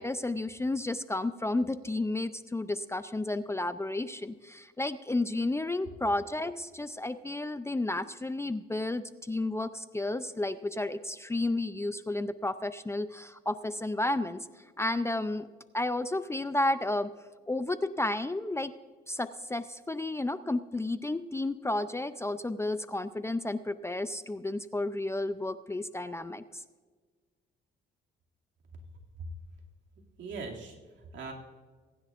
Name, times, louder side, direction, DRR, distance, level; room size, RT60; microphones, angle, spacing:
voice 1, 0.0-14.5 14.8-15.5 15.7-17.1 17.5-18.7 19.1-26.6, left 2 dB, 15° left, 12 dB, 0.5 m, -32 dB
voice 2, 30.2-31.3, right 4 dB, 70° right, -1 dB, 2.5 m, -40 dB
23.5 x 10.0 x 2.5 m, 1.5 s
cardioid pair, 90°, 20 cm